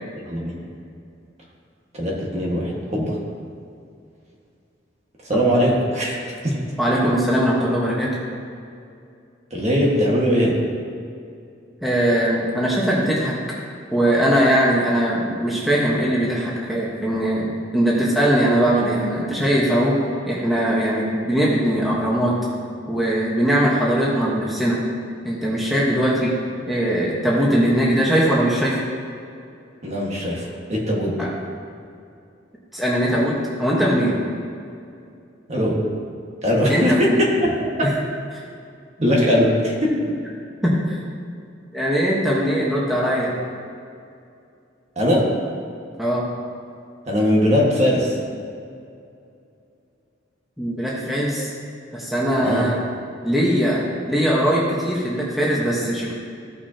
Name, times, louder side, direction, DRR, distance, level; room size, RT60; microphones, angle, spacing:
voice 1, 1.9-3.2 5.3-6.2 6.4-6.6 7.0-7.1 9.5-10.6 29.8-31.2 35.5-35.8 36.4-37.5 37.8-37.9 39.0-40.0 44.9-45.3 47.1-48.2 52.4-52.7, equal, 35° right, -3 dB, 1.6 m, -20 dB
voice 2, 6.8-8.1 11.8-13.3 13.9-17.5 17.7-20.0 20.3-22.4 22.9-24.9 25.2-26.3 26.7-28.8 31.2-31.3 32.7-34.2 36.7-37.2 37.8-37.9 38.3-38.4 40.6-41.0 41.7-43.3 46.0-46.3 50.6-51.5 51.9-52.8 53.2-56.1, equal, ahead, -6 dB, 1.2 m, -20 dB
15.5 x 5.9 x 2.9 m, 2.4 s
head